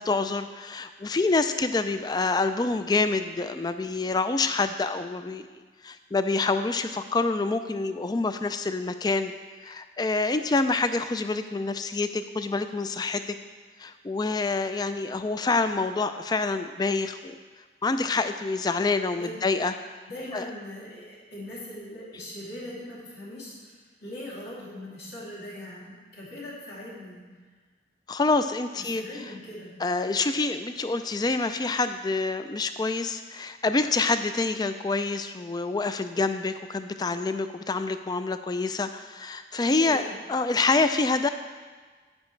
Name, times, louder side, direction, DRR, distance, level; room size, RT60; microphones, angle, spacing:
voice 1, 0.0-5.4 5.8-9.3 9.6-13.4 13.8-17.3 17.8-19.7 20.3-20.5 28.1-29.0 29.8-40.0 40.3-41.3, left 3 dB, 20° left, 10 dB, 0.3 m, -27 dB
voice 2, 19.0-19.4 20.1-27.2 28.7-29.7 39.6-40.1, left 1 dB, 60° left, -6 dB, 2.7 m, -40 dB
9.6 x 9.2 x 3.2 m, 1.4 s
head